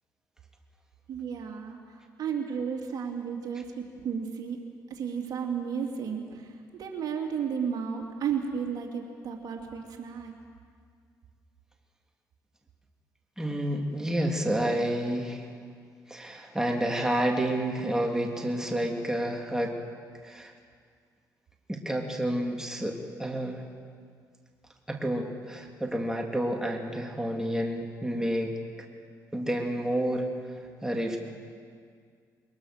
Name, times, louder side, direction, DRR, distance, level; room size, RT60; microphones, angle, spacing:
voice 1, 1.1-1.8 2.2-3.7 4.0-4.6 4.9-6.5 6.8-10.4, right 7 dB, 60° right, 2 dB, 2.8 m, -33 dB
voice 2, 13.4-15.5 16.1-19.8 20.2-20.5 21.7-23.6 24.9-28.6 29.3-30.3 30.8-31.2, right 1 dB, 10° right, 1 dB, 3.3 m, -29 dB
22.0 x 22.0 x 6.7 m, 2.1 s
supercardioid pair, 75°, 7 cm